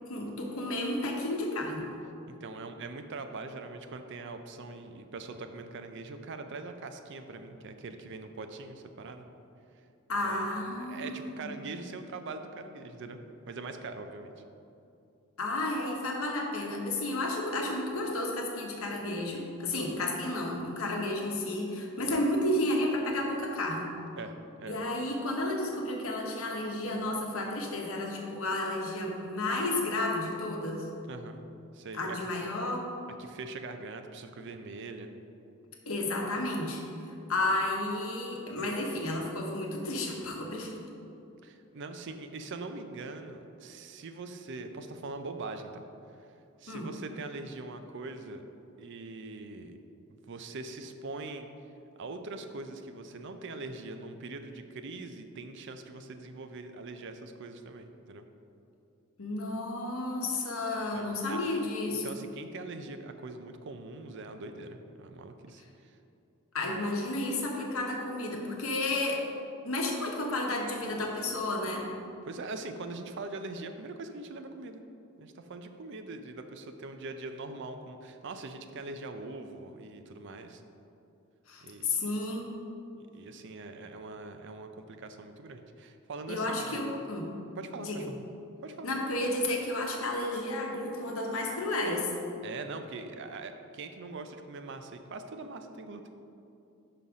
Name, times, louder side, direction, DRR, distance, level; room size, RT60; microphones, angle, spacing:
voice 1, 0.1-1.9 10.1-11.5 15.4-23.9 24.7-30.9 31.9-32.9 35.9-36.8 37.3-40.7 46.7-46.9 59.2-62.1 66.5-69.2 69.6-71.9 81.5-82.5 86.3-87.3 87.8-88.1 88.8-92.1, left 2 dB, 75° left, 0 dB, 1.0 m, -32 dB
voice 2, 2.3-9.3 10.2-10.5 10.8-13.2 13.5-14.3 24.2-24.3 24.6-24.8 31.1-31.4 31.7-32.2 33.2-35.1 41.4-45.8 46.2-46.3 46.6-48.4 48.8-49.8 50.1-51.5 52.0-58.2 60.9-61.4 62.0-66.0 72.2-74.8 75.2-80.6 81.6-82.0 83.0-86.9 87.6-88.2 88.6-88.9 92.4-96.0, right 3 dB, 55° right, 7 dB, 0.5 m, -42 dB
5.8 x 5.4 x 4.8 m, 2.7 s
head